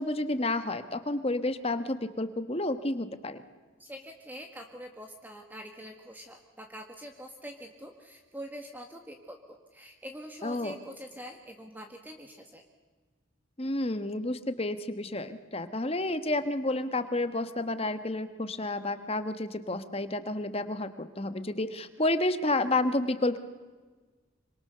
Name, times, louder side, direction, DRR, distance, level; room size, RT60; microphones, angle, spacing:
voice 1, 0.0-3.4 10.4-10.8 13.6-23.4, left 2 dB, 30° left, 10 dB, 1.3 m, -30 dB
voice 2, 3.8-12.6, equal, 10° right, 3 dB, 1.7 m, -45 dB
26.0 x 25.5 x 6.8 m, 1.4 s
head